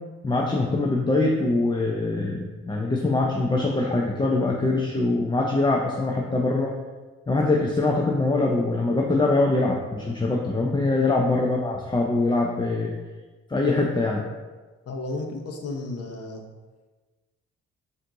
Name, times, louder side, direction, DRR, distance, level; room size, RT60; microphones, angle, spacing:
voice 1, 0.2-6.7 7.3-12.9 13.5-14.3, left 2 dB, 15° left, -1 dB, 0.5 m, -23 dB
voice 2, 14.8-16.4, left 2 dB, 55° left, 3 dB, 0.8 m, -33 dB
4.4 x 2.6 x 3.7 m, 1.3 s
supercardioid pair, 65°, 29 cm